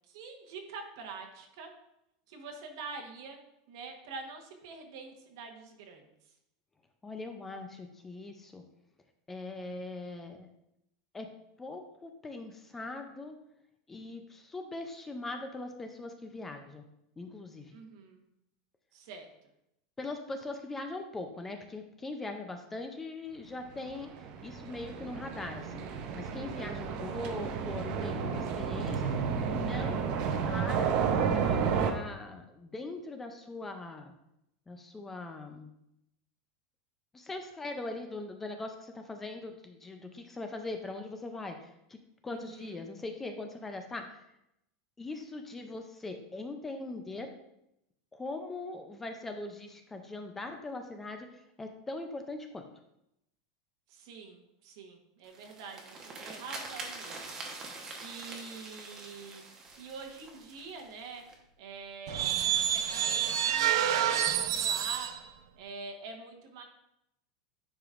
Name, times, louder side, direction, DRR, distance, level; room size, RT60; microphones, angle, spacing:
voice 1, 0.1-1.7 2.3-3.4 3.7-6.0 17.7-18.2 18.9-19.3 26.5-27.0 42.3-42.9 53.9-61.2 61.6-65.1 65.6-66.6, right 4 dB, 60° right, 3 dB, 1.1 m, -46 dB
voice 2, 7.0-8.6 9.3-10.5 11.1-11.3 11.6-13.4 13.9-16.8 17.2-17.8 20.0-31.0 31.3-34.1 34.7-35.7 37.1-42.0 42.2-44.2 45.0-47.3 48.1-52.6, left 2 dB, 10° left, 6 dB, 0.4 m, -41 dB
sound 1, 24.0-31.9, right 6 dB, 40° right, 0.6 m, -31 dB
sound 2, 55.2-61.3, right 3 dB, 20° right, 1.0 m, -45 dB
sound 3, 62.1-65.2, right 9 dB, 80° right, 0.6 m, -28 dB
9.9 x 5.0 x 2.5 m, 0.83 s
supercardioid pair, 165°, 2 cm